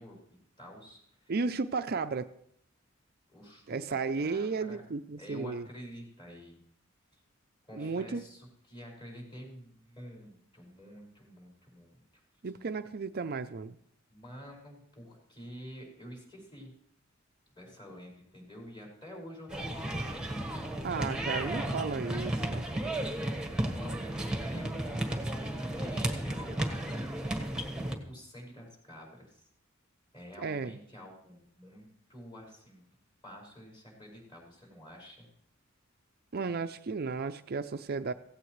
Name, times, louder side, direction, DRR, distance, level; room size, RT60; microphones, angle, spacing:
voice 1, 0.0-1.3 3.3-3.8 4.2-4.8 5.2-6.6 7.1-7.2 7.7-12.2 14.1-16.7 17.5-20.5 23.4-24.0 24.4-27.1 27.8-29.4 30.1-32.8 33.2-35.3, equal, 25° left, -1 dB, 5.4 m, -49 dB
voice 2, 1.3-2.3 3.7-5.7 7.7-8.2 12.4-13.8 20.8-22.7 30.4-30.8 36.3-38.1, right 4 dB, 50° right, 9 dB, 0.5 m, -34 dB
sound 1, 19.5-28.0, right 1 dB, 5° right, 1.4 m, -34 dB
16.5 x 16.5 x 3.2 m, 0.65 s
head